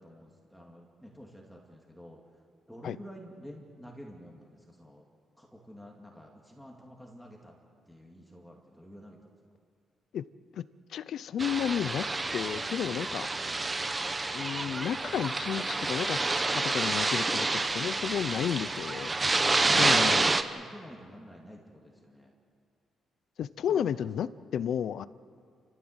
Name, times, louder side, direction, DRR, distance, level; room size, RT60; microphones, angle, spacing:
voice 1, 0.0-2.2 2.7-5.0 5.4-7.5 7.9-9.2 12.9-13.1 19.6-22.3 23.7-23.9, equal, ahead, -1 dB, 2.4 m, -49 dB
voice 2, 10.9-12.1 12.3-13.3 14.3-19.1 19.8-20.2 23.4-25.1, left 9 dB, 65° left, 16 dB, 0.6 m, -32 dB
sound 1, 11.4-20.4, right 3 dB, 20° right, 1.0 m, -28 dB
29.5 x 14.5 x 8.0 m, 2.2 s
cardioid pair, 135°, 0 cm